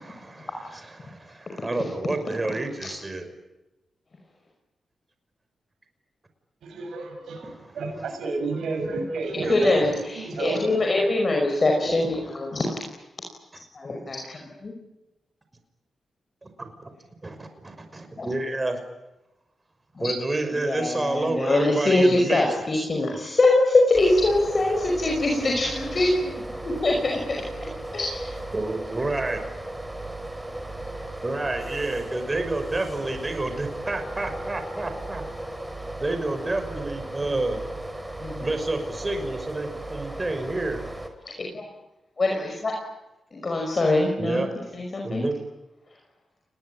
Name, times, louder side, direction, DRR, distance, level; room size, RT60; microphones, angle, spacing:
voice 1, 0.0-3.3 7.4-7.7 9.4-9.5 12.2-12.3 16.4-16.9 17.2-18.8 20.0-22.5 22.7-22.9 28.5-29.4 31.2-35.2 36.0-37.6 38.4-40.8 44.2-44.5 45.0-45.4, right 2 dB, 30° right, 7 dB, 6.0 m, -29 dB
voice 2, 6.6-9.9 10.1-10.7, right 3 dB, 80° right, 2 dB, 7.6 m, -30 dB
voice 3, 9.4-12.8 13.7-14.7 18.2-18.3 20.0-20.1 20.5-27.4 27.9-28.3 38.2-38.5 41.3-41.7 42.2-42.8 43.3-44.4 44.7-45.3, left 2 dB, 45° left, 1 dB, 5.4 m, -23 dB
sound 1, 23.9-41.1, right 1 dB, 15° right, 4.7 m, -36 dB
29.5 x 20.5 x 8.9 m, 0.98 s
cardioid pair, 55°, 0 cm